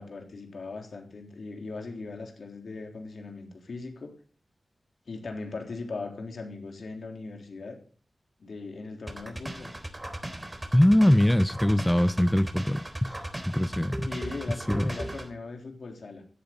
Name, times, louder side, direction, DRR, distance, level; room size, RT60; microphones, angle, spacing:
voice 1, 0.0-4.1 5.1-7.8 8.4-9.7 14.0-16.2, left 3 dB, 75° left, 3.6 m, -39 dB
sound 1, 9.1-15.3, right 1 dB, 20° right, 3.8 m, -37 dB
voice 2, 10.7-14.1 14.7-14.9, left 1 dB, 10° left, 0.8 m, -23 dB
16.0 x 11.5 x 4.0 m
cardioid pair, 50°, 0 cm